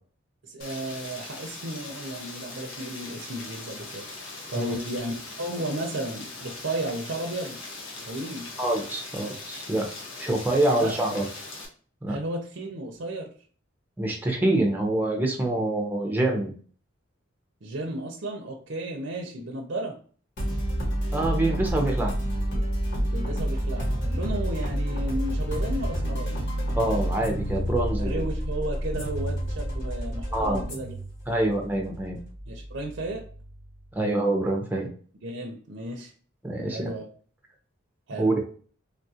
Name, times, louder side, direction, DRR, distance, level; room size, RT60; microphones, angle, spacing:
voice 1, 0.4-4.1 4.5-7.6 8.0-8.5 10.7-11.0 12.1-13.3 17.6-20.0 23.1-26.4 28.0-30.9 31.3-31.5 32.5-33.2 35.2-36.1 36.7-37.1 38.1-38.3, right 1 dB, 65° right, 2 dB, 0.5 m, -34 dB
Rain, 0.6-11.7, left 3 dB, 80° left, 0.8 m, -40 dB
voice 2, 8.6-9.9 10.2-11.2 12.0-12.2 14.0-16.5 21.1-22.1 26.7-28.2 30.3-30.6 31.3-32.2 33.9-34.9 36.4-36.9 38.2-38.6, right 1 dB, 10° right, 0 dB, 0.6 m, -26 dB
sound 1, 20.4-33.8, equal, 60° left, 1.2 m, -29 dB
3.5 x 2.4 x 2.7 m, 0.43 s
head